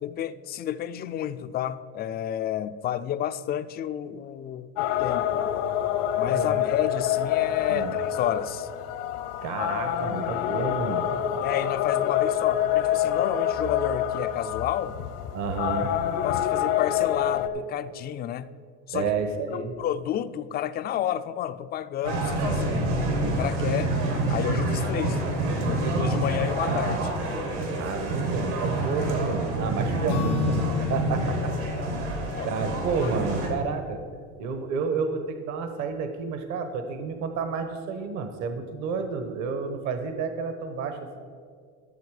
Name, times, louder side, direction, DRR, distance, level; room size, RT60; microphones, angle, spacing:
voice 1, 0.0-5.5 6.2-8.7 11.4-15.0 16.2-18.5 18.9-19.1 19.5-22.9 23.2-23.9 24.3-25.2 25.6-27.1 32.3-32.6, left 11 dB, 30° left, 13 dB, 0.3 m, -31 dB
sound 1, 4.8-17.5, left 10 dB, 70° left, 0.9 m, -27 dB
voice 2, 9.4-11.1 15.3-15.9 18.9-19.7 27.7-31.5 31.8-34.0 34.4-41.2, right 5 dB, 55° right, 8 dB, 1.1 m, -30 dB
sound 2, 22.0-33.5, right 2 dB, 80° right, 2.7 m, -27 dB
Acoustic guitar / Strum, 30.1-34.0, left 10 dB, 85° left, 1.7 m, -33 dB
12.5 x 7.2 x 4.8 m, 2.1 s
supercardioid pair, 110°, 33 cm